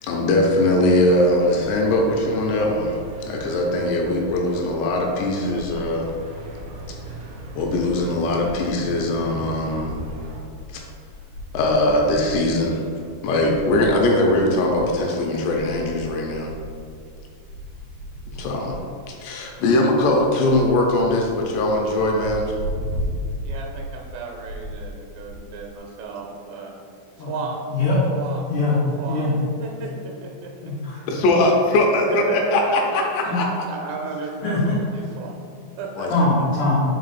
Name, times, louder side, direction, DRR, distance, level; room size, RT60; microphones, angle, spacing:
voice 1, 0.0-3.0 3.3-6.1 7.6-10.0 10.7-10.8 11.5-12.8 13.2-16.5 18.3-18.8 19.1-22.6 31.1-33.5 36.0-36.1, left 1 dB, 80° left, 0 dB, 2.8 m, -21 dB
sound 1, 0.9-10.4, right 1 dB, 75° right, 2.1 m, -38 dB
sound 2, 7.1-8.8 9.1-9.2 9.5-25.8, equal, 55° right, 2.0 m, -36 dB
voice 2, 23.4-26.7 27.3-27.6 28.1-28.5 29.0-29.3 29.6-30.7 32.3-32.4 32.7-33.0 33.7-35.3 35.8-36.1, right 4 dB, 90° right, 0 dB, 3.1 m, -34 dB
voice 3, 27.7-28.0 28.4-29.4 30.6-31.0 33.3-33.4 34.4-34.8 36.1-36.8, left 2 dB, 65° left, -10 dB, 2.2 m, -22 dB
5.4 x 5.0 x 4.1 m, 2.3 s
omnidirectional pair, 5.2 m